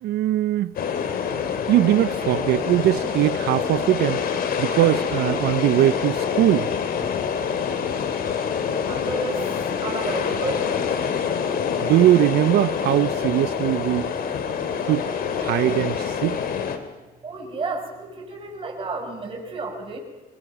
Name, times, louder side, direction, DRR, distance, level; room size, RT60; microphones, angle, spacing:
voice 1, 0.0-0.7 1.7-4.2 4.6-6.7 11.8-14.1 14.9-15.1 15.4-16.4, right 14 dB, 70° right, 0.6 m, -21 dB
sound 1, 0.8-16.8, left 7 dB, 60° left, 2.8 m, -26 dB
voice 2, 8.8-9.4 9.8-10.7 17.2-20.0, right 3 dB, 30° right, 6.6 m, -31 dB
25.5 x 20.5 x 6.0 m
cardioid pair, 110°, 17 cm